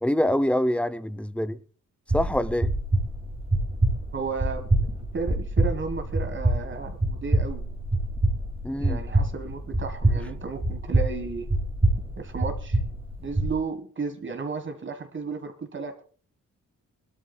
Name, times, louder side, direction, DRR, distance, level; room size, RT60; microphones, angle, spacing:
voice 1, 0.0-1.6 2.1-2.7 8.6-9.0, equal, 5° left, 0.7 m, -25 dB
sound 1, 2.1-13.5, right 2 dB, 20° right, 2.3 m, -26 dB
voice 2, 4.1-4.9 5.1-7.6 8.8-11.5 12.2-12.8 13.2-15.9, right 4 dB, 40° right, 1.6 m, -33 dB
23.0 x 12.5 x 2.3 m
wide cardioid pair, 145°, 30 cm